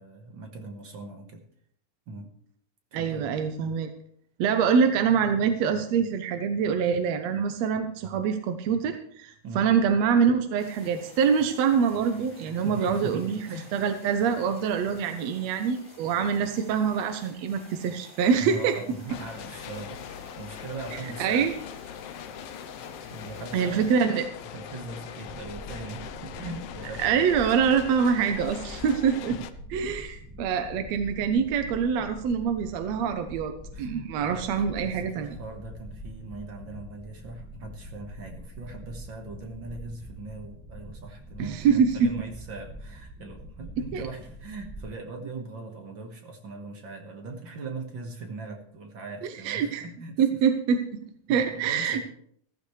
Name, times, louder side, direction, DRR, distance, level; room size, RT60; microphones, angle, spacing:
voice 1, 0.0-1.4 2.1-2.3 2.9-3.3 9.4-9.7 12.6-13.7 18.4-21.4 23.1-24.2 24.5-27.3 29.3-29.5 33.7-34.5 34.8-50.4 51.0-52.0, right 3 dB, 50° right, 3 dB, 1.7 m, -40 dB
voice 2, 2.9-3.9 4.4-18.8 21.2-21.5 23.5-24.3 27.0-29.4 29.7-33.5 33.8-35.4 41.4-42.1 43.9-44.0 49.2-49.9 50.2-51.0 51.3-52.0, right 6 dB, 70° right, 7 dB, 1.8 m, -25 dB
sound 1, 10.6-24.0, equal, 15° left, 4.0 m, -51 dB
sound 2, 19.1-29.5, left 9 dB, 80° left, 1.3 m, -41 dB
sound 3, 25.3-44.9, equal, 5° right, 0.7 m, -44 dB
15.0 x 14.5 x 3.2 m, 0.66 s
omnidirectional pair, 3.6 m